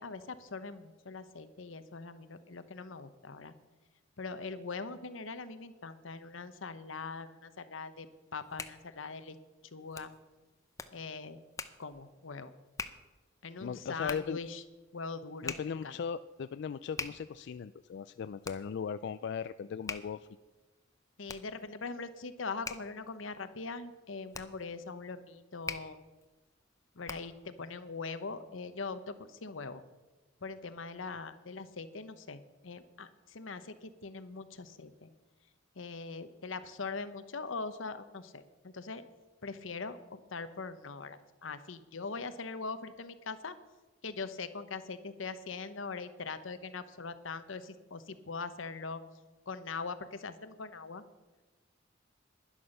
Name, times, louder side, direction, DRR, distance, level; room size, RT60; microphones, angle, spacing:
voice 1, 0.0-3.5 4.2-8.1 8.3-9.4 9.7-10.1 10.9-11.4 11.8-12.5 13.4-14.6 14.9-15.6 15.8-15.9 21.2-26.0 26.9-29.8 30.4-35.1 35.8-39.0 39.4-43.6 44.0-49.0 49.5-51.0, left 4 dB, 85° left, 11 dB, 0.9 m, -42 dB
Hands, 8.2-27.5, left 4 dB, 15° left, 0.7 m, -47 dB
voice 2, 13.6-14.4 15.4-20.3, left 6 dB, 60° left, 12 dB, 0.3 m, -38 dB
11.0 x 10.5 x 6.6 m, 1.2 s
head